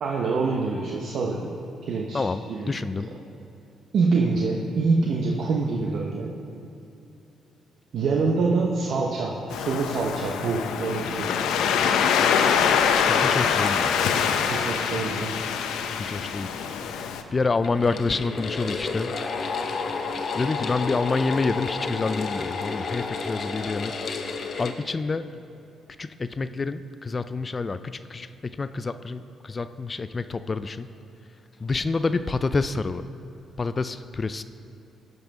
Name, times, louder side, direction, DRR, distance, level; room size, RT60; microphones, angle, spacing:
voice 1, 0.0-1.5 1.9-2.8 3.9-6.3 7.9-11.3 14.5-15.4, right 4 dB, 65° right, -1 dB, 0.8 m, -25 dB
voice 2, 2.1-3.1 13.1-14.0 16.1-16.5 17.3-19.1 20.4-23.9 24.6-25.3 26.0-27.8 28.1-30.9 31.6-33.0 33.6-34.4, left 3 dB, 30° left, 12 dB, 0.3 m, -27 dB
Waves surf, 9.5-17.2, left 7 dB, 85° left, 0.5 m, -24 dB
sound 1, 17.6-24.7, left 4 dB, 55° left, 0.8 m, -31 dB
12.5 x 5.4 x 5.3 m, 2.9 s
cardioid pair, 90°, 0 cm